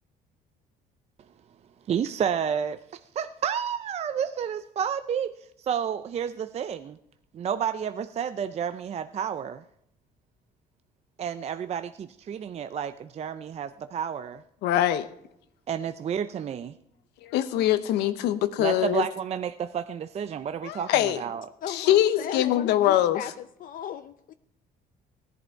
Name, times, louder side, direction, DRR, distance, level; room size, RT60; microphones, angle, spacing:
voice 1, 1.9-5.3 5.6-7.0 7.3-9.6 11.2-14.4 15.7-16.7 18.6-21.5, right 8 dB, 40° right, 11 dB, 0.5 m, -30 dB
voice 2, 14.6-15.1 17.2-19.0 20.6-21.2 21.7-23.2, left 12 dB, 90° left, 12 dB, 0.9 m, -23 dB
voice 3, 21.6-24.3, left 10 dB, 55° left, 11 dB, 0.5 m, -37 dB
16.0 x 11.0 x 4.6 m, 0.76 s
cardioid pair, 110°, 17 cm